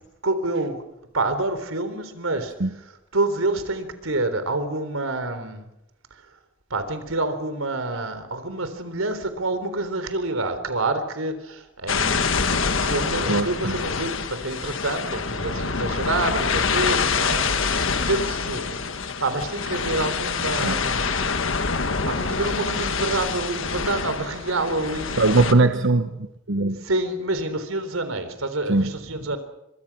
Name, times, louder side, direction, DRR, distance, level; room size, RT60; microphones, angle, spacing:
voice 1, 0.2-0.8 1.1-2.5 3.1-5.7 6.7-12.4 12.7-21.2 22.0-25.2 26.8-29.4, right 2 dB, 90° right, 10 dB, 3.7 m, -27 dB
sound 1, 11.9-25.5, left 5 dB, 70° left, 1.6 m, -26 dB
voice 2, 13.3-13.7 20.6-20.8 25.2-26.8 28.7-28.9, right 2 dB, 65° right, 8 dB, 1.1 m, -20 dB
25.5 x 24.0 x 6.1 m, 0.89 s
head